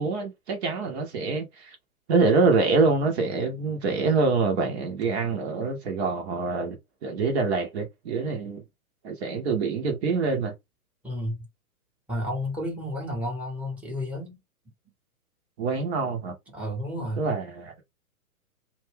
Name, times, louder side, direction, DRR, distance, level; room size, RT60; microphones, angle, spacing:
voice 1, 0.0-1.8 2.1-8.6 9.0-10.5 15.6-16.4 17.2-17.7, right 4 dB, 45° right, 0.9 m, -25 dB
voice 2, 11.0-11.5 12.1-14.4 16.5-17.2, left 1 dB, 5° right, 1.0 m, -31 dB
2.5 x 2.3 x 3.3 m
figure-of-eight pair, 115°, 44 cm